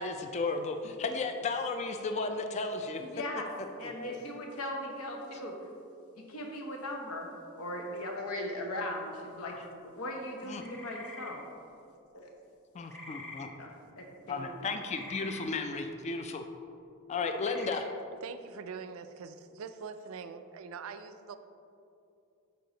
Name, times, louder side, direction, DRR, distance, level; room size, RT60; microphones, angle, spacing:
voice 1, 0.0-3.0 3.8-3.9 9.4-9.7 10.4-10.6 12.7-13.5 14.3-16.4 17.1-17.9, left 3 dB, 30° left, 6 dB, 0.3 m, -34 dB
voice 2, 3.0-3.5 3.8-5.5 6.2-7.3 7.6-9.6 9.8-11.4 12.1-12.3 13.6-13.7 14.0-14.7, left 1 dB, 85° left, 1 dB, 0.9 m, -38 dB
sound 1, 10.6-11.3 12.9-13.4 14.9-15.4 17.2-17.8, left 2 dB, 5° left, 0.8 m, -46 dB
voice 3, 18.2-21.4, right 5 dB, 70° right, 10 dB, 0.4 m, -43 dB
6.7 x 4.5 x 3.9 m, 2.6 s
head